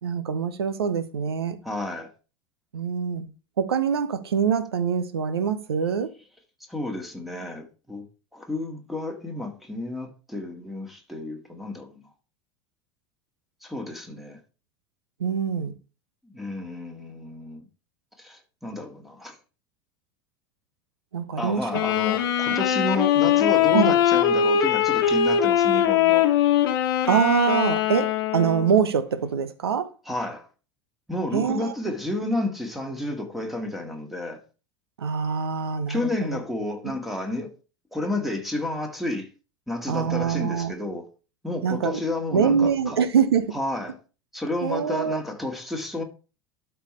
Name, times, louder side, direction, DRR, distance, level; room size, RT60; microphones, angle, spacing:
voice 1, 0.0-1.6 2.7-3.3 3.6-6.1 15.2-15.8 21.1-21.7 23.7-23.9 27.1-29.9 31.3-31.7 35.0-36.4 39.9-40.7 41.6-42.0 42.3-43.6 44.6-45.2, right 7 dB, 75° right, 0.9 m, -24 dB
voice 2, 1.6-2.1 6.7-8.1 8.3-12.1 13.6-14.4 16.2-17.7 18.2-19.4 21.4-26.3 30.1-30.5 31.1-34.4 35.9-37.5 37.9-39.3 39.7-41.1 41.4-43.0 43.5-44.0 44.3-46.0, left 2 dB, ahead, 2.0 m, -31 dB
Wind instrument woodwind instrument, 21.7-28.9, left 9 dB, 60° left, 1.1 m, -21 dB
12.5 x 4.6 x 3.3 m
figure-of-eight pair, 80°, 13 cm